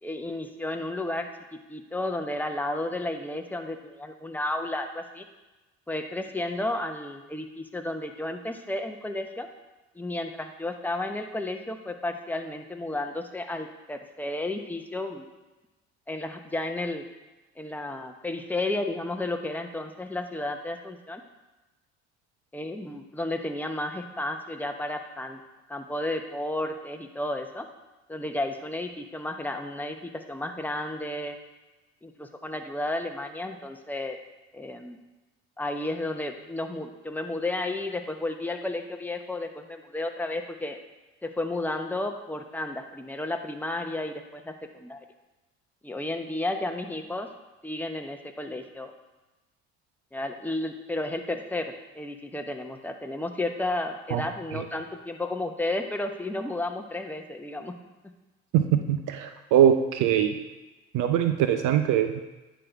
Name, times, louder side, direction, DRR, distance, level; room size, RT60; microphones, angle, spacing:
voice 1, 0.0-5.2 5.9-9.5 9.9-15.3 16.1-17.0 17.6-21.2 22.5-25.4 25.7-27.7 28.1-31.4 32.0-34.2 34.5-35.0 35.6-40.8 41.2-45.0 45.8-47.3 47.6-48.9 50.1-57.8, left 2 dB, 5° left, 4 dB, 0.9 m, -32 dB
voice 2, 58.5-60.4 60.9-62.2, right 10 dB, 75° right, 8 dB, 0.6 m, -22 dB
9.8 x 4.0 x 4.6 m, 1.1 s
supercardioid pair, 65°, 31 cm